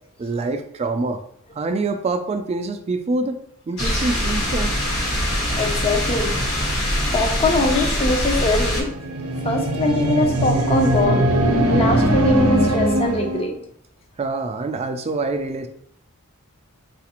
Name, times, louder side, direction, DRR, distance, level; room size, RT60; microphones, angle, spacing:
voice 1, 0.2-1.2 1.5-3.4 3.7-4.7 14.2-15.7, right 3 dB, 30° right, 7 dB, 0.3 m, -25 dB
sound 1, 3.8-8.8, equal, 70° left, 1.2 m, -23 dB
voice 2, 5.3-6.4 6.7-8.9 9.3-11.4 11.7-13.6, left 2 dB, 25° left, 3 dB, 0.5 m, -22 dB
sound 2, 8.8-13.5, right 1 dB, 85° right, 0.6 m, -20 dB
3.9 x 2.4 x 2.9 m, 0.69 s
head